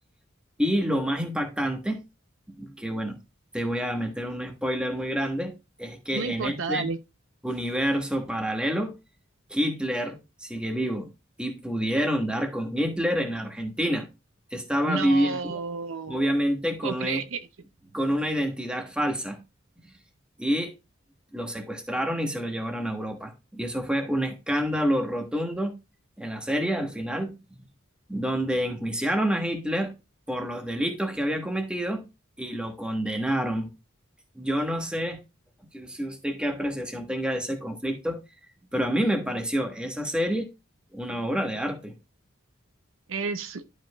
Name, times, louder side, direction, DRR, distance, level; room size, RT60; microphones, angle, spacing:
voice 1, 0.6-2.0 2.6-3.2 3.5-5.5 5.8-6.8 7.4-8.9 9.5-11.1 11.4-14.1 14.5-15.6 16.1-17.2 17.9-19.4 20.4-20.7 21.3-25.7 26.2-27.6 28.1-29.9 30.3-32.0 32.4-33.7 34.3-35.2 35.7-38.2 38.7-40.5 40.9-41.9, equal, 5° right, 1.3 m, -28 dB
voice 2, 6.1-7.0 14.8-16.2 16.8-17.5 43.1-43.6, right 4 dB, 70° right, 0.7 m, -31 dB
11.5 x 5.1 x 2.3 m
head